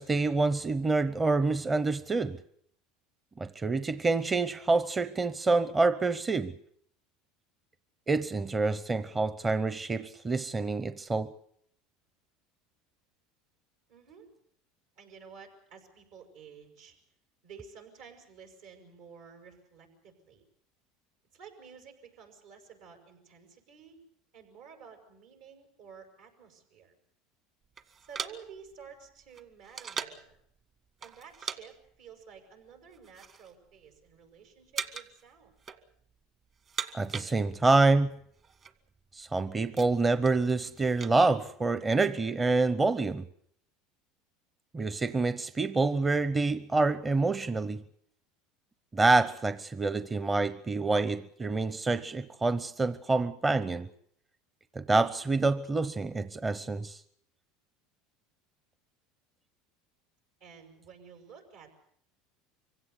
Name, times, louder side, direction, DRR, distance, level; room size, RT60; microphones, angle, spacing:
voice 1, 0.0-2.4 3.4-6.6 8.1-11.3 36.9-38.1 39.1-43.3 44.7-47.8 48.9-53.9 54.7-57.0, right 3 dB, 20° right, 0.8 m, -27 dB
voice 2, 13.9-14.3 14.9-17.0 17.4-20.4 21.3-24.0 24.3-26.9 28.0-30.4 31.0-35.6 60.4-61.7, right 6 dB, 80° right, 6.5 m, -52 dB
sound 1, 27.8-30.3 31.0-31.6 31.9-32.1 32.8-33.5 33.8-34.3 34.7-35.2 35.5-36.2 36.5-37.8 38.1-38.2 38.4-38.7 39.2-41.2, right 6 dB, 40° right, 1.6 m, -40 dB
25.0 x 16.5 x 8.2 m
supercardioid pair, 100°, 0 cm